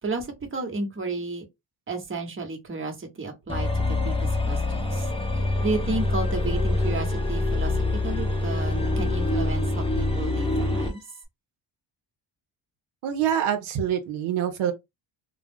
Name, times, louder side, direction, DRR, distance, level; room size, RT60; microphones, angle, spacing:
voice 1, 0.0-1.4 1.9-5.1 5.3-11.0, right 3 dB, 25° right, 0.9 m, -32 dB
sound 1, 3.5-11.0, left 2 dB, 10° left, 0.6 m, -25 dB
voice 2, 13.0-14.7, right 9 dB, 80° right, 0.6 m, -25 dB
2.3 x 2.1 x 3.3 m
cardioid pair, 80°, 48 cm